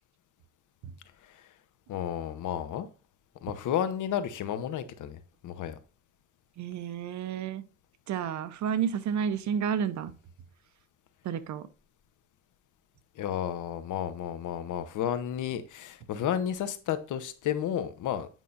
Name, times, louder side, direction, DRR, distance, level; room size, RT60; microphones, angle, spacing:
voice 1, 1.9-2.9 3.4-5.8 13.2-18.3, left 10 dB, 75° left, 0.9 m, -32 dB
voice 2, 6.6-7.6 8.1-10.1 11.2-11.7, right 7 dB, 65° right, 0.7 m, -31 dB
9.1 x 5.5 x 2.5 m
cardioid pair, 135°, 31 cm